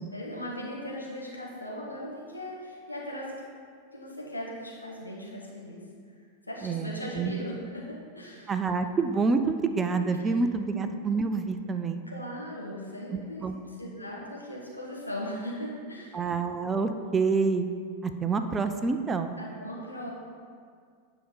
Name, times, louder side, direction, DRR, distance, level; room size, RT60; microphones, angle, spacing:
voice 1, 0.1-3.4 3.9-5.8 6.5-8.5 12.1-13.4 13.8-16.2 19.4-20.1, left 1 dB, 85° left, -4 dB, 2.0 m, -38 dB
voice 2, 6.6-7.3 8.5-12.0 13.4-13.6 16.1-17.7 18.0-19.4, right 4 dB, 20° right, 8 dB, 0.6 m, -27 dB
10.0 x 5.1 x 5.6 m, 2.1 s
figure-of-eight pair, 90°, 0 cm